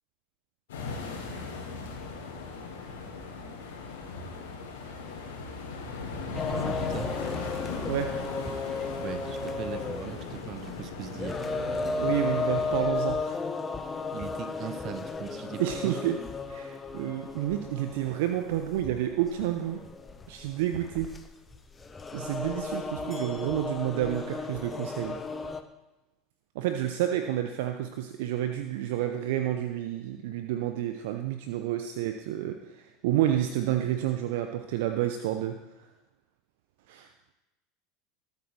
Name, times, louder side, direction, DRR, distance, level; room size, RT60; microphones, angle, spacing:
sound 1, 0.7-12.8, left 4 dB, 70° left, 3.0 m, -38 dB
sound 2, 6.3-25.6, left 4 dB, 20° left, 1.1 m, -34 dB
voice 1, 6.5-7.1 9.0-11.4 14.1-15.9, right 9 dB, 45° right, 10 dB, 1.2 m, -39 dB
voice 2, 12.0-13.4 15.6-16.2 16.5-19.8 20.3-21.1 22.1-25.2 26.5-35.6 36.9-37.1, right 12 dB, 65° right, 7 dB, 0.7 m, -30 dB
19.5 x 8.3 x 3.4 m, 1.0 s
figure-of-eight pair, 75°, 0 cm